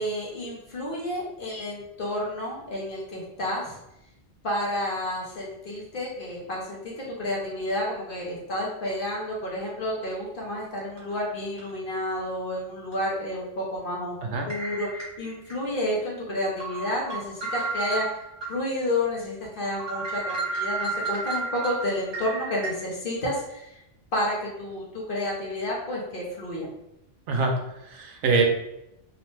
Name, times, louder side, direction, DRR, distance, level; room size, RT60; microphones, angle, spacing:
voice 1, 0.0-3.8 4.4-14.2 14.5-14.9 15.2-18.1 18.5-23.8 24.1-26.7, left 1 dB, 55° left, -3 dB, 0.7 m, -30 dB
sound 1, 11.0-11.1 11.6-11.7 12.9-13.0 14.5-15.5 16.0-16.1 16.6-18.5 18.9-19.0 19.4-19.5 19.8-22.7, right 3 dB, 25° right, 0.8 m, -32 dB
voice 2, 27.3-28.5, right 3 dB, 75° right, 2 dB, 0.9 m, -24 dB
2.9 x 2.1 x 3.0 m, 0.84 s
omnidirectional pair, 1.3 m